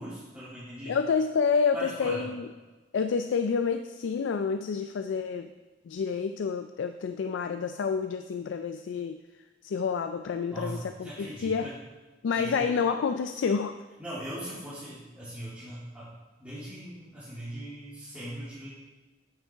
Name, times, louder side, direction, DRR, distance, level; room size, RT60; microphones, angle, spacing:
voice 1, 0.0-1.0 1.7-2.3 10.5-11.7 12.3-12.7 14.0-16.1 16.4-18.7, equal, 10° right, -13 dB, 2.5 m, -39 dB
voice 2, 0.9-2.5 2.9-5.5 5.9-9.2 9.6-11.7 12.2-13.8, left 5 dB, 85° left, 8 dB, 0.3 m, -28 dB
8.7 x 7.1 x 3.4 m, 1.2 s
head